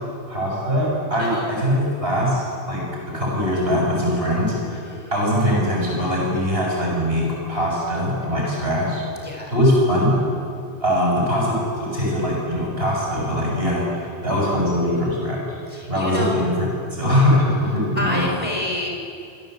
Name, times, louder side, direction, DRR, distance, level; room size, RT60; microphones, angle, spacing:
voice 1, 0.3-2.8 3.1-4.5 5.1-9.0 9.5-10.1 10.8-15.4 15.9-18.2, equal, 60° right, -3 dB, 7.6 m, -21 dB
voice 2, 1.2-1.5 4.7-5.1 9.2-9.5 15.7-16.4 17.9-18.9, left 1 dB, 30° left, -1 dB, 4.9 m, -29 dB
26.5 x 16.5 x 8.1 m, 2.4 s
omnidirectional pair, 1.1 m